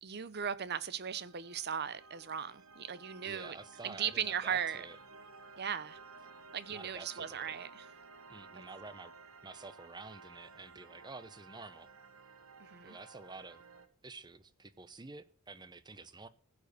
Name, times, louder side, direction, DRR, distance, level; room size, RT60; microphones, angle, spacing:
voice 1, 0.0-3.6 3.8-4.9 5.6-6.0 6.5-7.8 12.6-13.0, right 8 dB, 50° right, 0.8 m, -37 dB
sound 1, 1.0-13.9, right 4 dB, 90° right, 1.3 m, -55 dB
voice 2, 3.2-5.0 6.7-7.5 8.3-9.1 9.4-11.9 12.8-13.6 14.0-16.3, right 3 dB, 20° right, 0.8 m, -49 dB
15.5 x 5.2 x 6.6 m
head